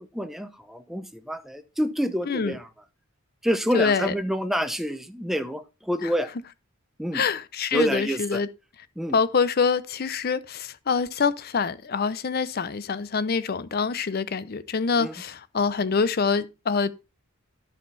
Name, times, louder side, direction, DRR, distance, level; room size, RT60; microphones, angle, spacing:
voice 1, 0.0-2.6 3.4-6.3 7.0-7.2 7.7-8.4 9.0-9.1 15.0-15.1, equal, ahead, 0.7 m, -27 dB
voice 2, 2.2-2.6 3.7-4.1 6.0-6.1 7.1-8.5 9.1-16.9, left 5 dB, 50° left, 0.6 m, -25 dB
11.0 x 5.6 x 3.9 m
head